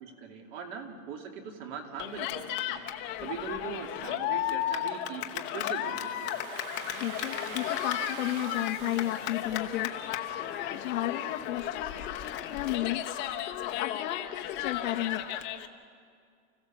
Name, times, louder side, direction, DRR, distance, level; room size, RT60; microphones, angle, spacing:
voice 1, 0.0-6.3 8.0-8.1, right 6 dB, 45° right, 4 dB, 2.5 m, -41 dB
Cheering, 2.0-15.7, left 11 dB, 25° left, 1.0 m, -34 dB
Domestic sounds home sounds, 5.9-10.6, right 8 dB, 80° right, 1.7 m, -45 dB
voice 2, 6.9-10.0 10.4-13.1 13.4-15.2, left 13 dB, 75° left, 3 dB, 1.1 m, -34 dB
29.5 x 15.5 x 7.1 m, 2.3 s
supercardioid pair, 165°, 41 cm